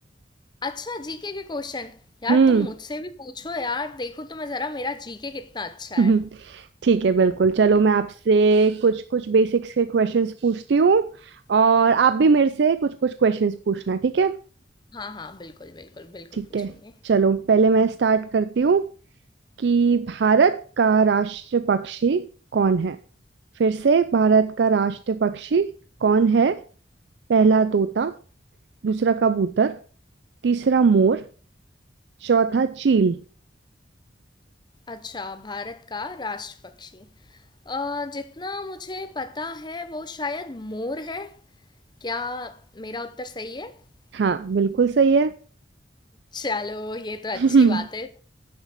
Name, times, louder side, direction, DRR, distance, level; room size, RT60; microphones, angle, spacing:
voice 1, 0.6-6.1 14.9-16.4 16.7-16.9 34.9-37.1 37.7-41.4 42.0-43.7 46.3-48.1, left 3 dB, 25° left, 0.8 m, -33 dB
voice 2, 2.3-2.7 6.0-14.4 16.3-16.7 17.0-18.9 19.6-23.0 23.6-25.7 26.0-26.6 27.3-28.2 28.8-29.8 30.4-31.3 32.2-33.2 44.1-45.3 47.3-47.9, right 5 dB, 70° right, 0.4 m, -20 dB
9.4 x 6.5 x 5.0 m
head